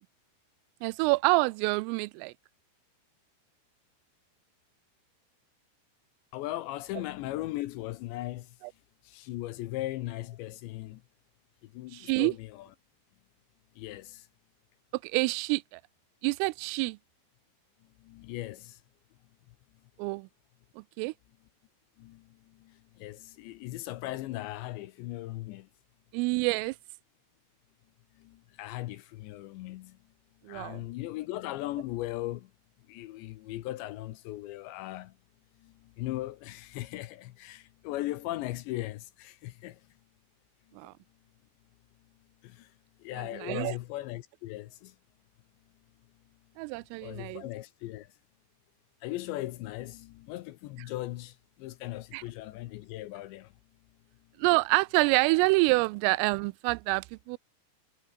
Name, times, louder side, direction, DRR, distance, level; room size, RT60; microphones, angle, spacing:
voice 1, 0.8-2.3 11.9-12.3 15.0-15.8 16.2-17.0 20.0-20.3 20.8-21.1 26.1-26.8 30.5-30.8 40.8-40.9 43.2-43.8 46.6-47.4 52.1-52.2 54.4-57.4, right 25 dB, 90° right, 3.2 m, -27 dB
voice 2, 6.3-8.5 9.0-11.0 11.7-12.7 13.8-14.3 18.0-18.8 22.0-22.2 22.6-25.7 28.2-30.0 30.5-32.5 32.9-35.1 35.6-39.8 42.4-42.7 43.0-44.9 47.0-48.1 49.0-53.5, left 16 dB, 80° left, 2.8 m, -38 dB
omnidirectional pair, 5.8 m